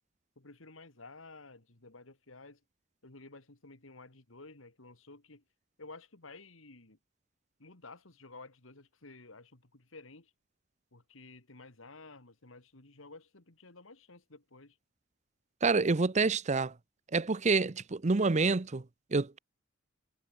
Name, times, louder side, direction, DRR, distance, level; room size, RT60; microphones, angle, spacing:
voice 1, 0.4-2.6 3.0-5.4 5.8-7.0 7.6-10.3 10.9-14.8, left 3 dB, 80° left, 2.7 m, -53 dB
voice 2, 15.6-16.7 17.1-18.8 19.1-19.4, right 4 dB, 35° right, 0.7 m, -27 dB
head